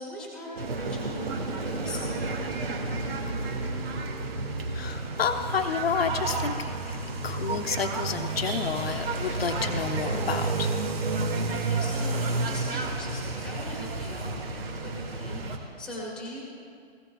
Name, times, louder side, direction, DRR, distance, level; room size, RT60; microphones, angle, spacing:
voice 1, 0.0-3.7 11.5-16.4, left 1 dB, 5° left, -5 dB, 1.2 m, -41 dB
sound 1, 0.6-15.6, right 3 dB, 75° right, 2.1 m, -31 dB
voice 2, 4.7-7.0 7.2-10.7, left 6 dB, 75° left, 5 dB, 1.1 m, -30 dB
19.0 x 16.0 x 2.3 m, 2.3 s
hypercardioid pair, 175°, 31 cm